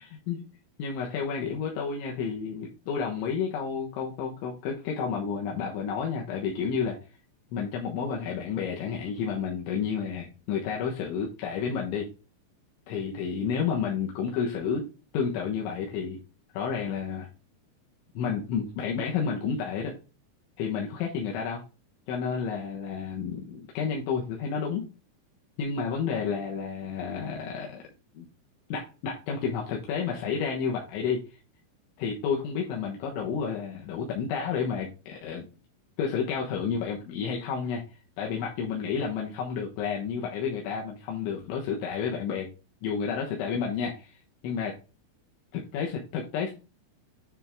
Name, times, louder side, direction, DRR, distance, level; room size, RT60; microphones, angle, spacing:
voice 1, 0.8-7.0 7.5-12.1 12.9-14.9 15.1-16.2 16.5-17.3 18.2-20.0 20.6-21.6 22.1-24.9 25.6-27.8 28.2-28.3 28.7-31.2 32.0-35.5 36.0-37.8 38.2-42.5 42.8-44.2 44.4-44.7 45.5-46.5, left 6 dB, 85° left, -1 dB, 3.6 m, -30 dB
10.0 x 3.7 x 3.5 m, 0.31 s
omnidirectional pair, 5.4 m